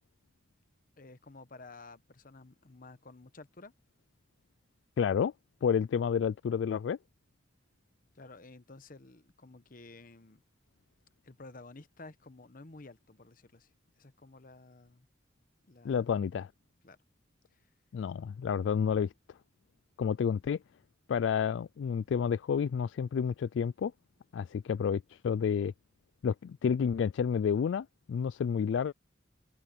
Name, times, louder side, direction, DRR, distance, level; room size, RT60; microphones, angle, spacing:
voice 1, 1.0-3.7 8.1-10.4 11.2-13.7 14.0-15.1 15.7-16.1 16.8-17.0 17.5-17.7, left 3 dB, 45° left, 1.0 m, -52 dB
voice 2, 5.0-5.3 5.6-7.0 15.8-16.5 17.9-19.1 20.0-20.6 21.1-23.9 24.3-25.7 26.2-28.9, left 7 dB, 75° left, 0.3 m, -30 dB
head